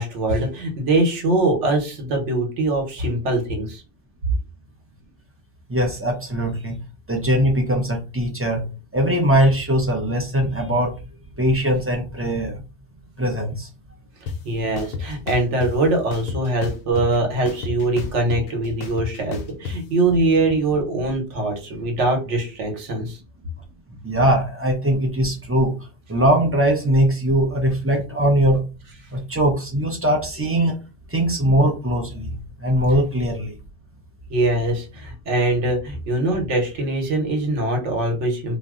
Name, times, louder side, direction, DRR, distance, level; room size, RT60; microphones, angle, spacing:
voice 1, 0.0-3.8 14.4-23.2 34.3-38.6, right 2 dB, 80° right, 3 dB, 1.2 m, -22 dB
voice 2, 5.7-6.8 7.1-11.0 11.4-12.6 13.2-13.7 24.0-25.7 26.1-28.6 29.1-30.8 31.1-33.5, right 1 dB, 20° right, 1 dB, 0.3 m, -21 dB
sound 1, 14.3-14.4 14.8-15.7 16.1-17.2 17.5-19.7, left 5 dB, 65° left, 0.7 m, -30 dB
2.6 x 2.1 x 3.5 m, 0.32 s
omnidirectional pair, 1.2 m